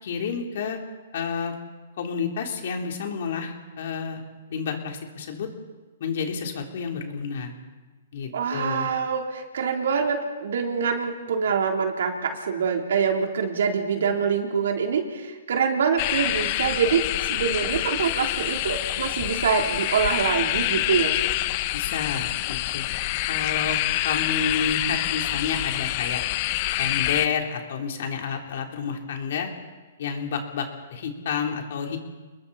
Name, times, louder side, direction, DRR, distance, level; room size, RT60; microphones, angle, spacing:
voice 1, 0.0-0.8 1.1-1.6 2.0-4.2 4.5-5.5 6.0-7.5 8.1-8.9 21.7-22.8 23.2-26.2 26.8-29.5 30.0-32.0, left 6 dB, 60° left, 2 dB, 3.7 m, -30 dB
voice 2, 8.3-21.2, right 6 dB, 70° right, 2 dB, 3.5 m, -25 dB
sound 1, 16.0-27.3, left 16 dB, 40° left, 0.8 m, -26 dB
29.5 x 21.0 x 4.3 m, 1.3 s
hypercardioid pair, 140°, 0 cm